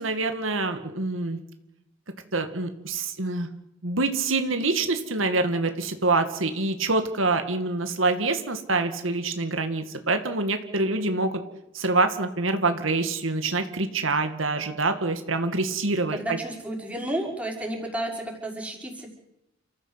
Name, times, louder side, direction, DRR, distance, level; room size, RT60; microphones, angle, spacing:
voice 1, 0.0-1.4 2.3-3.5 3.8-11.3 11.7-16.4, right 3 dB, 75° right, 7 dB, 2.2 m, -26 dB
voice 2, 16.1-19.1, right 1 dB, 5° right, -1 dB, 5.8 m, -32 dB
29.5 x 15.5 x 8.2 m, 0.88 s
head